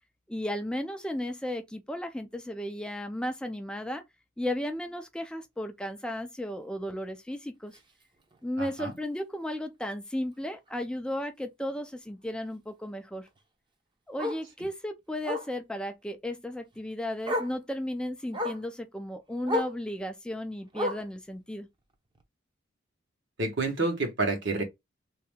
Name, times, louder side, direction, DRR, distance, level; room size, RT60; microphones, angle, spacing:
voice 1, 0.3-4.0 4.4-7.8 8.4-13.3 14.1-21.7, left 1 dB, 5° left, 0.4 m, -34 dB
Bark, 7.7-7.9 8.3-8.4 8.8-8.9 9.2-9.3 10.7-10.8 13.3-13.4 14.2-14.5 15.2-15.5 16.7-16.8 17.2-17.6 18.3-18.7 19.4-19.8 20.7-21.2 22.2-22.3, left 1 dB, 25° right, 0.7 m, -31 dB
voice 2, 8.6-8.9 23.4-24.6, right 3 dB, 65° right, 1.3 m, -29 dB
3.1 x 2.8 x 3.4 m
head